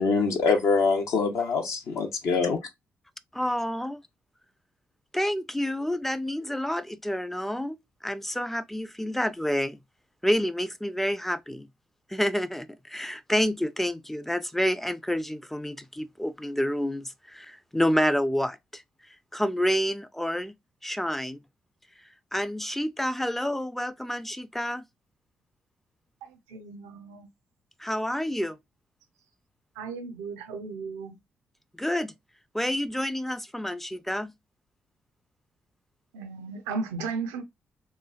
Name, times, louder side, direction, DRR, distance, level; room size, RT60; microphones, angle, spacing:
voice 1, 0.0-2.6, left 4 dB, 65° left, 0.5 m, -24 dB
voice 2, 3.3-4.0 5.1-7.8 8.0-9.8 10.2-11.7 12.1-18.8 19.3-20.6 20.8-21.4 22.3-24.8 27.8-28.6 31.8-32.1 32.5-34.3, equal, 5° left, 0.3 m, -28 dB
voice 3, 26.2-27.3 29.8-31.2 36.1-37.4, right 4 dB, 80° right, 0.4 m, -35 dB
3.0 x 2.3 x 2.2 m
hypercardioid pair, 40°, 6 cm